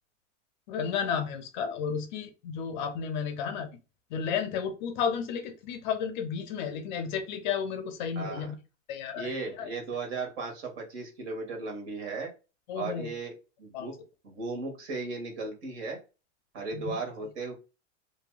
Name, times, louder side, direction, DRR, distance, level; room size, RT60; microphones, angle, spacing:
voice 1, 0.7-3.7 4.1-8.6 8.9-9.3 9.6-9.7 12.7-13.1 13.7-13.9 16.7-17.0, left 7 dB, 40° left, 7 dB, 0.5 m, -32 dB
voice 2, 8.1-8.5 9.1-12.3 12.7-13.3 13.6-14.0 14.2-16.0 16.5-17.5, right 3 dB, 55° right, 2 dB, 1.5 m, -36 dB
2.9 x 2.6 x 2.2 m, 0.30 s
supercardioid pair, 145°, 38 cm